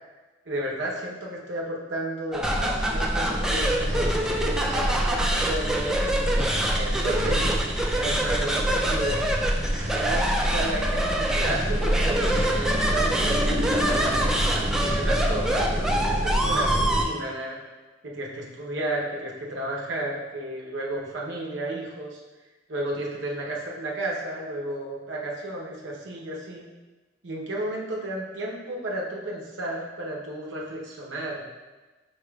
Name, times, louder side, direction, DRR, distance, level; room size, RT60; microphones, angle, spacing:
voice 1, 0.5-6.0 6.8-7.6 7.9-9.2 9.9-14.3 14.8-17.6 18.0-22.2 22.7-26.6 27.2-31.5, right 1 dB, 70° right, -3 dB, 0.8 m, -32 dB
sound 1, 2.3-17.0, right 1 dB, 5° right, 0.3 m, -26 dB
sound 2, 2.4-17.0, right 1 dB, 45° right, 1.0 m, -27 dB
5.7 x 3.6 x 2.3 m, 1.2 s
head